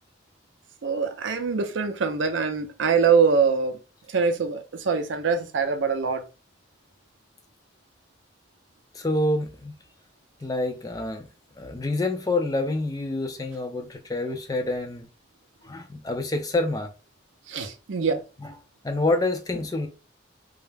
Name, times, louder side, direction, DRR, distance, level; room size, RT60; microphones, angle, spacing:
voice 1, 0.8-3.8 4.1-6.2 17.5-18.2, right 5 dB, 90° right, 0.5 m, -23 dB
voice 2, 8.9-9.7 10.4-11.3 11.6-15.1 15.6-16.9 18.4-18.5 18.8-19.9, left 2 dB, 20° left, 0.4 m, -27 dB
2.3 x 2.1 x 3.2 m
head